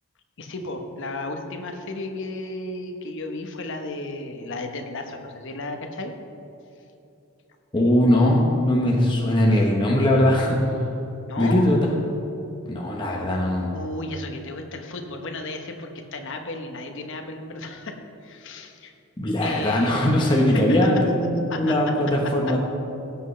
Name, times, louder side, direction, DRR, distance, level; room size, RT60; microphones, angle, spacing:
voice 1, 0.4-6.1 11.3-11.7 13.7-18.9 19.4-20.1 20.3-20.6 21.5-21.7, left 2 dB, 60° left, 4 dB, 1.1 m, -34 dB
voice 2, 7.7-10.6 11.4-11.9 12.7-13.7 19.2-22.6, left 1 dB, 20° left, -2 dB, 1.0 m, -20 dB
16.5 x 8.0 x 3.3 m, 2.9 s
head